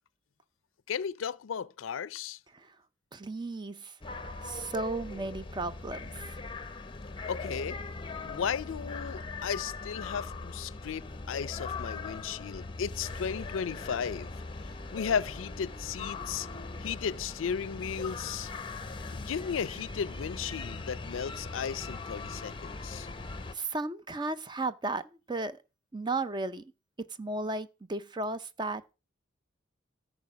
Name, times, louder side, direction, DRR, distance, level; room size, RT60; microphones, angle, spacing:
voice 1, 0.9-2.4 7.3-7.8 8.2-14.3 14.9-16.5 16.8-18.5 19.1-23.1, left 7 dB, 90° left, 0.4 m, -35 dB
voice 2, 3.1-3.9 4.4-6.4 23.5-25.0 25.3-25.6 25.9-26.7 27.2-28.8, right 2 dB, 25° right, 0.6 m, -34 dB
sound 1, 4.0-23.5, left 3 dB, 25° left, 0.7 m, -40 dB
13.5 x 5.2 x 5.9 m
head